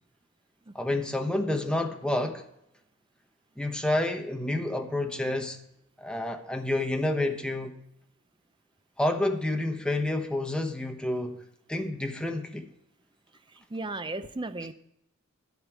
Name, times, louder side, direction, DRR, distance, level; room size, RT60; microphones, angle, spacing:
voice 1, 0.7-2.4 3.6-5.6 6.0-7.7 9.0-11.4 11.7-12.7, left 1 dB, 5° left, 4 dB, 1.0 m, -29 dB
voice 2, 13.7-14.7, right 2 dB, 20° right, 11 dB, 0.6 m, -35 dB
12.0 x 5.4 x 8.4 m, 0.81 s
head